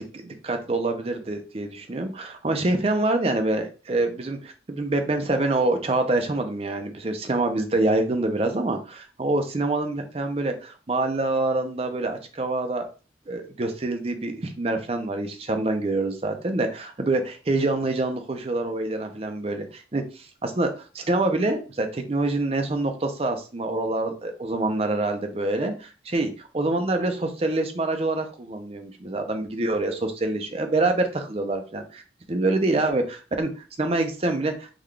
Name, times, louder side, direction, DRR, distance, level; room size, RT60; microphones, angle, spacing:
voice 1, 0.0-12.9 13.3-20.7 20.9-32.0 32.3-34.7, right 2 dB, 30° right, 5 dB, 0.5 m, -26 dB
3.8 x 2.3 x 3.2 m, 0.35 s
head